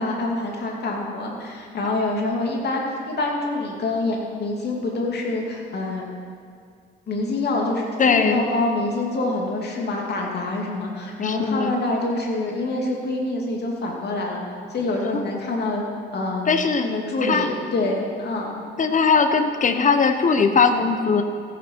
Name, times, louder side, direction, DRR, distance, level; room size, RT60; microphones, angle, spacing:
voice 1, 0.0-2.8 3.1-6.1 7.1-14.4 14.7-15.8 16.1-16.5 16.8-18.5, left 2 dB, 55° left, -1 dB, 2.7 m, -26 dB
voice 2, 8.0-8.4 11.2-11.7 15.1-15.2 16.5-16.9 17.2-17.5 18.8-21.2, left 5 dB, 40° left, 7 dB, 1.1 m, -19 dB
15.0 x 9.8 x 4.7 m, 2.3 s
cardioid pair, 90°, 20 cm